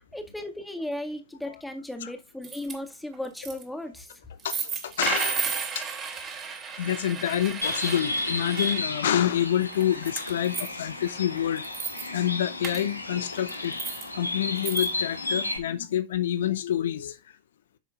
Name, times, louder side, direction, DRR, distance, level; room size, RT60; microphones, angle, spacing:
voice 1, 0.0-4.2, left 1 dB, 5° left, 2.0 m, -36 dB
sound 1, 2.4-2.7 3.1-3.6 4.4-8.8 9.5-10.7 11.1-11.2 11.5-12.1 12.6-12.8 13.3-14.1 14.6-14.9, right 6 dB, 25° right, 3.0 m, -33 dB
voice 2, 4.8-5.5 5.7-5.9 6.8-11.6 12.1-13.7 14.1-17.2, left 10 dB, 60° left, 0.7 m, -27 dB
Bird, 7.6-15.6, left 2 dB, 85° left, 2.2 m, -33 dB
11.0 x 7.1 x 2.5 m
figure-of-eight pair, 90°, 0 cm